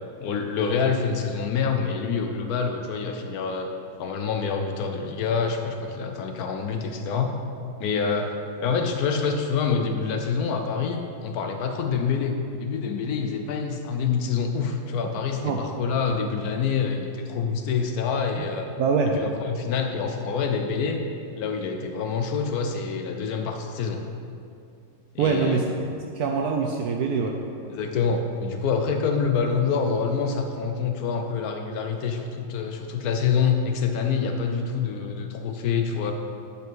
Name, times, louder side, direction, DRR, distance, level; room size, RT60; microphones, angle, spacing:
voice 1, 0.2-3.7 4.0-7.3 7.8-18.7 19.2-21.0 21.3-24.0 25.1-25.6 27.7-36.1, left 5 dB, 70° left, 4 dB, 0.9 m, -26 dB
voice 2, 18.8-19.1 25.2-25.9 26.1-27.4, right 5 dB, 75° right, 2 dB, 0.9 m, -24 dB
8.8 x 5.5 x 4.5 m, 2.5 s
omnidirectional pair, 2.1 m